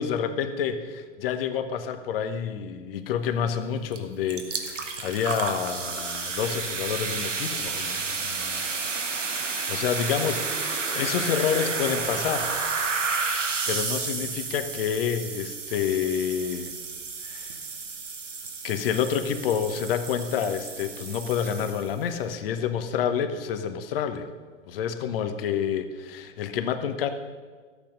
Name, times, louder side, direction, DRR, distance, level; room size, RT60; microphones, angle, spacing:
voice 1, 0.0-8.7 9.4-12.5 13.7-16.7 17.2-17.6 18.6-24.3 24.7-27.1, left 8 dB, 50° left, 9 dB, 1.2 m, -28 dB
sound 1, 3.9-4.0 4.3-22.0, right 4 dB, 75° right, 1.5 m, -31 dB
13.5 x 8.5 x 5.3 m, 1.5 s
figure-of-eight pair, 105°, 37 cm